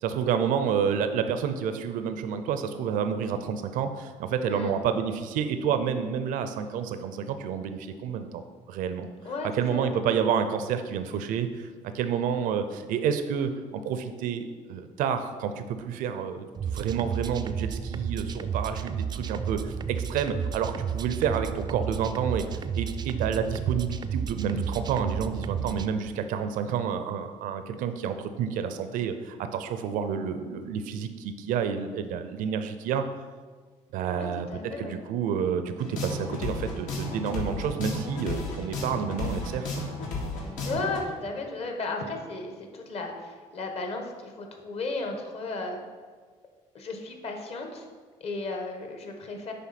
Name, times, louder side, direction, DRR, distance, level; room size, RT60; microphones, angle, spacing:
voice 1, 0.0-8.4 8.7-9.1 9.5-11.7 11.9-22.4 22.7-33.0 33.9-34.5 34.8-39.7, right 7 dB, 90° right, 9 dB, 0.6 m, -29 dB
voice 2, 4.5-4.8 9.2-10.0 34.2-35.0 40.6-45.8 46.7-47.9 48.2-49.5, left 3 dB, 50° left, 3 dB, 1.3 m, -34 dB
sound 1, 16.5-25.9, right 7 dB, 30° right, 0.4 m, -32 dB
sound 2, 35.8-41.0, left 2 dB, 80° left, 1.8 m, -33 dB
9.3 x 3.5 x 5.9 m, 1.5 s
cardioid pair, 125°, 13 cm